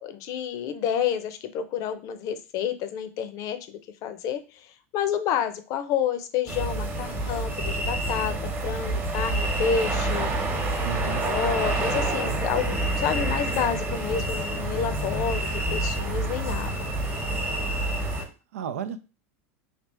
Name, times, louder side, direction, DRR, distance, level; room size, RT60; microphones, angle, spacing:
voice 1, 0.0-4.4 4.9-8.4 8.6-10.3 11.0-16.9, left 8 dB, 50° left, 10 dB, 0.6 m, -29 dB
sound 1, 6.5-18.2, right 2 dB, 25° right, 1.0 m, -28 dB
voice 2, 10.8-11.3 18.2-19.0, right 8 dB, 90° right, 11 dB, 0.5 m, -34 dB
3.4 x 2.4 x 4.2 m, 0.32 s
supercardioid pair, 115°, 8 cm